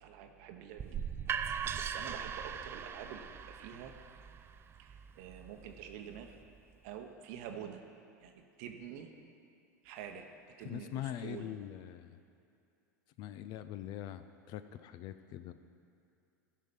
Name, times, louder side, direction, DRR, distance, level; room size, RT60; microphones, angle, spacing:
voice 1, 0.0-1.1 1.5-3.9 4.8-6.4 6.8-7.8 8.2-9.1 9.8-10.3 10.6-11.5, right 8 dB, 60° right, 4 dB, 0.8 m, -47 dB
sound 1, 0.8-6.6, right 7 dB, 25° right, 0.4 m, -40 dB
voice 2, 10.6-12.2 13.2-15.5, left 11 dB, 45° left, 12 dB, 0.5 m, -43 dB
13.5 x 5.7 x 5.2 m, 2.5 s
hypercardioid pair, 90°, 9 cm